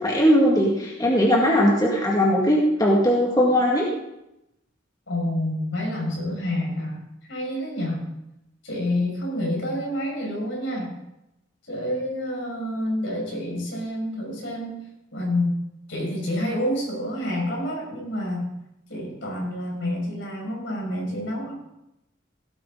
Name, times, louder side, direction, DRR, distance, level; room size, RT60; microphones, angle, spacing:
voice 1, 0.0-3.9, equal, 20° left, -3 dB, 2.0 m, -19 dB
voice 2, 5.1-7.0 7.3-8.0 8.6-11.0 11.7-14.8 15.1-15.6 15.9-18.5 18.9-21.5, left 1 dB, 75° left, -2 dB, 5.8 m, -28 dB
17.0 x 9.4 x 3.9 m, 0.86 s
head